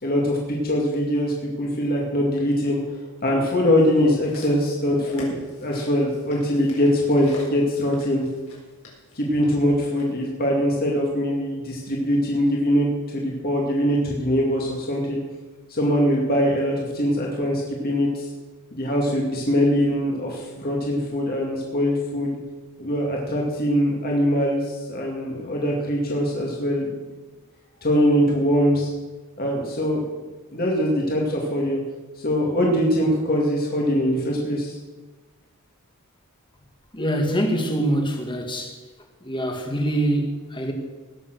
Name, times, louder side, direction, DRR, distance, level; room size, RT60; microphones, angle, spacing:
voice 1, 0.0-2.8 3.2-8.2 9.2-15.2 15.7-18.3 18.7-22.4 22.8-26.9 27.8-28.9 29.4-30.0 30.5-31.8 32.2-34.8, equal, 45° left, 2.3 m, -22 dB
sound 1, 3.8-10.1 10.9-11.0, left 1 dB, 70° left, 4.7 m, -43 dB
voice 2, 36.9-38.8 39.2-40.7, right 1 dB, 20° left, 1.8 m, -24 dB
18.0 x 7.1 x 6.7 m
head